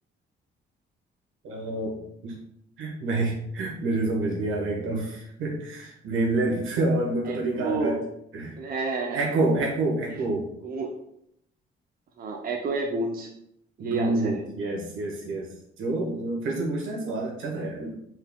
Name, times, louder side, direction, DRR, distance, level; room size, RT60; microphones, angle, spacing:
voice 1, 1.4-2.3 2.8-8.0 8.3-8.5 9.1-10.5 13.8-17.9, right 2 dB, 85° right, -1 dB, 1.2 m, -28 dB
voice 2, 7.2-8.0 8.6-9.2 10.1-10.2 10.6-10.9 12.2-13.3 13.8-14.3, right 3 dB, 45° right, 2 dB, 0.6 m, -30 dB
4.4 x 3.5 x 2.2 m, 0.75 s
cardioid pair, 90°, 20 cm